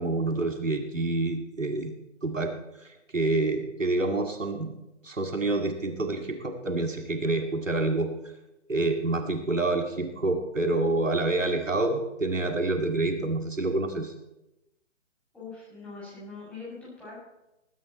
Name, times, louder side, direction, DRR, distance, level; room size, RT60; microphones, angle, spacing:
voice 1, 0.0-1.9 2.2-2.5 2.8-4.7 5.0-8.1 8.7-14.1, right 2 dB, 85° right, 4 dB, 2.2 m, -27 dB
voice 2, 15.3-17.2, left 4 dB, 5° left, -9 dB, 6.7 m, -42 dB
19.5 x 10.5 x 4.3 m, 0.94 s
figure-of-eight pair, 145°, 37 cm